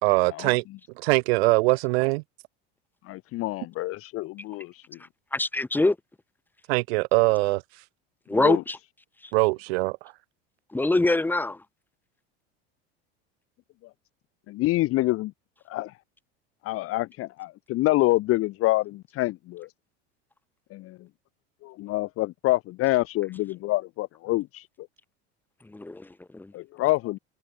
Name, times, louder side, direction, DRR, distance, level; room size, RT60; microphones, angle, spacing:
voice 1, 0.0-0.6 1.0-2.2 6.7-7.6 9.3-10.1, right 26 dB, 80° right, 1.3 m, -22 dB
voice 2, 3.0-5.0 8.3-8.6 14.5-15.3 15.7-15.9 16.6-19.7 20.7-21.0 21.6-24.9 26.5-27.2, left 18 dB, 45° left, 0.6 m, -27 dB
voice 3, 5.3-6.0 8.3-8.8 10.7-11.6 25.7-26.5, left 2 dB, 5° left, 0.6 m, -24 dB
supercardioid pair, 105°, 31 cm